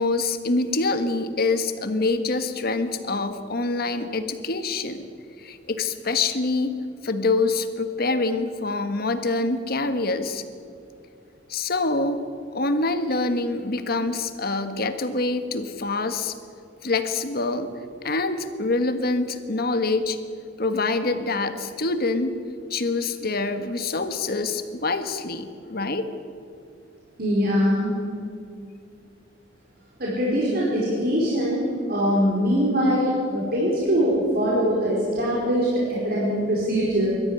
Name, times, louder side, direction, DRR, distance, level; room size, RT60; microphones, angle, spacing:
voice 1, 0.0-5.1 5.4-6.7 7.0-10.4 11.5-12.2 12.5-16.3 16.8-17.7 18.0-20.2 20.6-22.4 22.7-26.1, left 3 dB, 55° left, 9 dB, 1.5 m, -25 dB
voice 2, 27.2-27.9 30.0-37.1, equal, 55° right, -6 dB, 4.7 m, -22 dB
22.0 x 14.0 x 9.7 m, 2.4 s
head